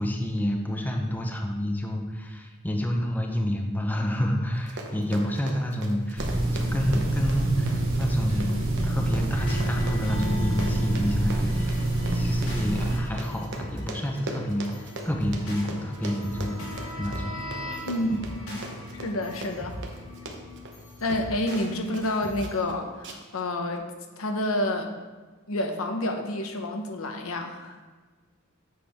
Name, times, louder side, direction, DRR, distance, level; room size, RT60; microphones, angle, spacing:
voice 1, 0.0-6.3 6.5-17.3, equal, 10° left, 2 dB, 0.6 m, -29 dB
Run, 4.5-22.1 22.4-22.7 23.0-23.4 23.8-23.9, right 2 dB, 60° right, 0.9 m, -41 dB
sound 1, 6.2-13.0, right 1 dB, 85° right, 2.0 m, -26 dB
sound 2, 9.3-22.6, left 1 dB, 70° left, 2.2 m, -39 dB
voice 2, 17.8-18.6 18.9-19.8 21.0-23.9 24.2-24.9 25.5-27.9, left 1 dB, 85° left, 4 dB, 0.9 m, -29 dB
7.7 x 6.3 x 3.5 m, 1.3 s
head